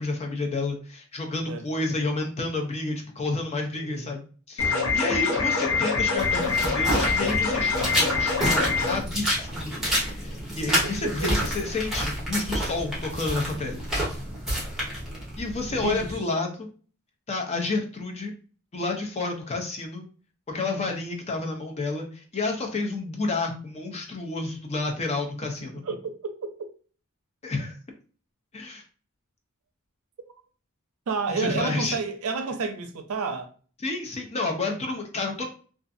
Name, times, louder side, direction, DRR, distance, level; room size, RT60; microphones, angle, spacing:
voice 1, 0.0-13.8 15.4-16.7 17.3-18.3 18.7-20.0 20.5-25.8 27.4-27.7 28.5-28.8 31.3-32.0 33.8-35.5, left 3 dB, 30° left, 0.5 m, -30 dB
voice 2, 1.5-1.8 3.7-4.2 4.6-5.0 10.8-11.4 15.7-16.2 20.5-21.0 25.8-26.7 31.1-33.5, right 4 dB, 75° right, 0.5 m, -31 dB
sound 1, 4.6-9.0, left 4 dB, 65° left, 0.8 m, -25 dB
sound 2, 6.2-16.2, equal, ahead, 0.8 m, -29 dB
2.4 x 2.4 x 2.5 m
head